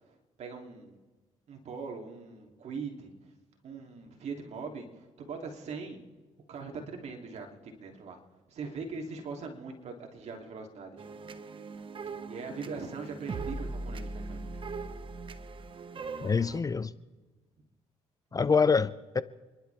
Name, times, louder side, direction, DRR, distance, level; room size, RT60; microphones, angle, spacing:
voice 1, 0.0-1.0 1.5-3.1 3.6-6.0 6.5-8.2 8.5-11.1 12.3-14.4 18.3-18.4, right 4 dB, 60° right, 3.0 m, -41 dB
sound 1, 11.0-16.6, right 3 dB, 40° right, 1.1 m, -40 dB
voice 2, 16.2-16.9 18.3-19.2, left 5 dB, 30° left, 0.6 m, -25 dB
29.0 x 11.5 x 3.5 m
supercardioid pair, 75°, 13 cm